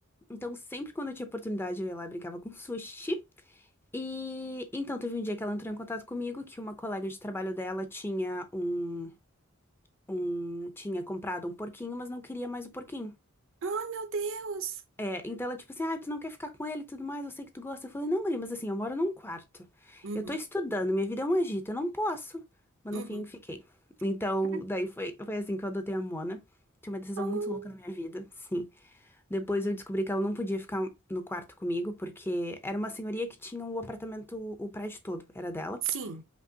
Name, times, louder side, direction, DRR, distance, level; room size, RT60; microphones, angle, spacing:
voice 1, 0.3-3.2 3.9-9.1 10.1-13.1 15.0-22.4 22.8-23.6 24.0-26.4 26.8-29.0 29.3-35.8, equal, 10° left, 0.6 m, -34 dB
voice 2, 13.6-14.8 20.0-20.4 22.9-23.3 24.5-24.6 27.2-27.7 35.8-36.2, right 5 dB, 65° right, 0.7 m, -34 dB
5.3 x 2.9 x 2.7 m
head